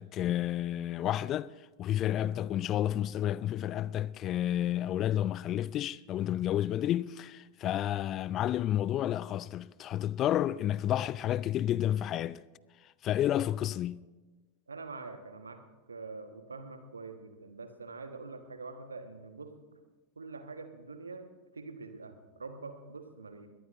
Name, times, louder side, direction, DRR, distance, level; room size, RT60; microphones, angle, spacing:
voice 1, 0.0-1.5 1.8-12.4 13.0-14.0, left 12 dB, 30° left, 0.3 m, -30 dB
voice 2, 14.7-15.6 15.9-19.5 20.2-21.3 21.5-23.5, right 3 dB, 75° right, 1.4 m, -45 dB
22.0 x 18.0 x 2.6 m
figure-of-eight pair, 90°, 0 cm